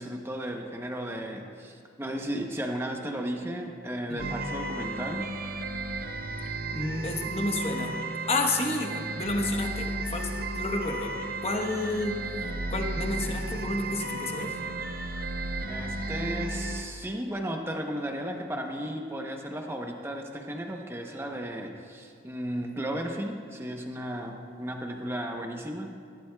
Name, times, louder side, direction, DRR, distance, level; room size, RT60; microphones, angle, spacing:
voice 1, 0.0-5.3 15.7-25.9, right 1 dB, 10° right, 2 dB, 0.8 m, -34 dB
voice 2, 4.1-4.4 6.7-8.0 8.3-14.6, left 2 dB, 30° left, 3 dB, 1.0 m, -31 dB
sound 1, 4.2-16.8, right 2 dB, 50° right, 0.6 m, -34 dB
18.5 x 12.0 x 2.3 m, 2.2 s
head